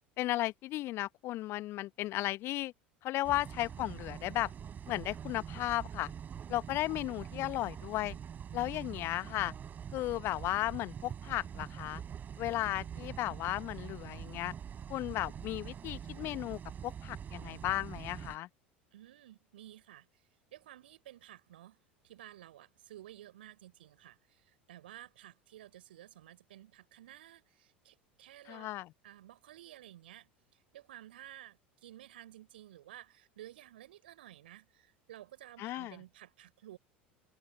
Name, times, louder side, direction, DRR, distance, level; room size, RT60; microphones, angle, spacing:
voice 1, 0.2-2.7 3.0-4.5 4.9-6.1 6.5-8.2 8.5-9.5 9.9-12.0 12.4-14.5 14.9-18.5 28.5-28.9 35.6-36.0, left 16 dB, 45° left, 1.3 m, -35 dB
sound 1, 3.2-18.4, right 8 dB, 30° right, 7.7 m, -45 dB
voice 2, 18.9-20.2 20.5-28.7 29.0-36.8, right 13 dB, 65° right, 5.8 m, -53 dB
figure-of-eight pair, 75°, 6 cm